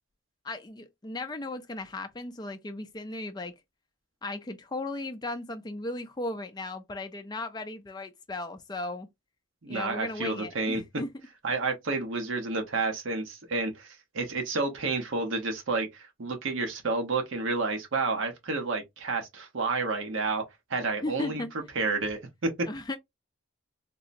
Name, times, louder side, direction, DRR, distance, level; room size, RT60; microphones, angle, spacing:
voice 1, 0.4-3.5 4.2-9.1 9.7-11.1 21.0-21.5 22.7-23.0, left 2 dB, 20° left, 0.4 m, -36 dB
voice 2, 9.6-10.8 11.4-20.4 20.7-21.4 21.7-22.5, right 3 dB, 70° right, 0.8 m, -30 dB
3.7 x 2.0 x 2.5 m
head